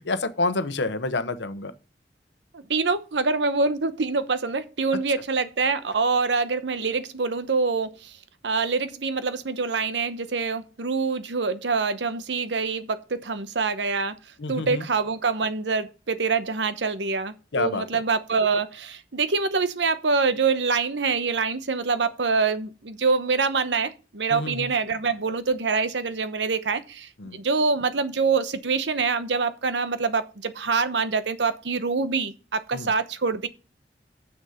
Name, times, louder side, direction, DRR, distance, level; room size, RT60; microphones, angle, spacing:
voice 1, 0.0-1.7 14.4-14.8 17.5-17.8 24.3-24.7 27.2-27.4 32.7-32.9, left 3 dB, 85° left, 0.9 m, -28 dB
voice 2, 2.5-8.2 8.4-14.1 14.5-33.5, right 4 dB, 90° right, 0.9 m, -25 dB
7.1 x 6.4 x 7.0 m
head